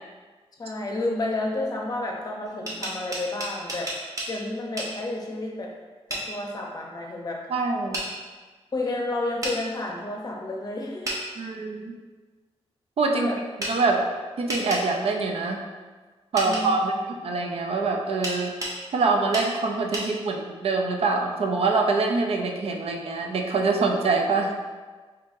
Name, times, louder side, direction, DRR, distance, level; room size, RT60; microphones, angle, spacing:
voice 1, 0.6-5.7 6.1-7.5 8.7-11.2 13.1-13.4 16.4-17.0, left 2 dB, 35° left, -1 dB, 0.7 m, -31 dB
sound 1, 2.5-4.3 4.8-4.9 6.1-6.3 7.9-8.1 9.4-9.6 11.0-11.2 13.6-13.7 14.5-14.8 16.4-16.6 18.2-18.8 19.3-19.5 19.9-20.1, right 1 dB, 30° right, 0.8 m, -31 dB
voice 2, 7.5-8.0 11.4-11.9 13.0-13.3 13.6-14.0 14.4-15.6 16.3-16.9 17.2-18.5 18.9-24.5, right 3 dB, 65° right, 2 dB, 0.5 m, -24 dB
5.3 x 2.7 x 2.6 m, 1.4 s
wide cardioid pair, 130°, 11 cm